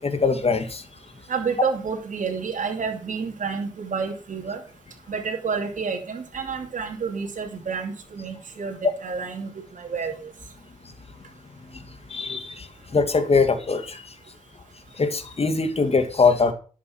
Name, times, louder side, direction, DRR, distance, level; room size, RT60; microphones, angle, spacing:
voice 1, 0.0-0.8 12.1-12.7 12.9-14.0 15.0-16.5, left 4 dB, 50° left, 8 dB, 2.3 m, -22 dB
voice 2, 1.3-4.6 5.1-10.3, right 5 dB, 80° right, 2 dB, 2.8 m, -29 dB
11.5 x 7.6 x 6.2 m, 0.37 s
cardioid pair, 65°, 13 cm